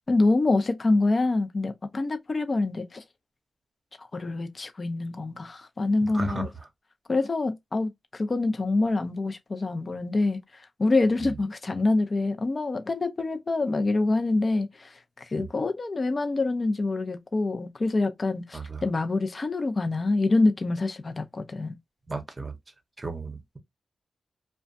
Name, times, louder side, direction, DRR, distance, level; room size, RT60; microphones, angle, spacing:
voice 1, 0.1-3.0 4.1-6.5 7.1-21.8, left 2 dB, 40° left, 0.5 m, -26 dB
voice 2, 6.1-6.5 15.4-15.5 18.5-18.8 22.1-22.5 23.0-23.6, right 2 dB, 30° right, 0.7 m, -34 dB
2.4 x 2.2 x 2.5 m
cardioid pair, 70°, 0 cm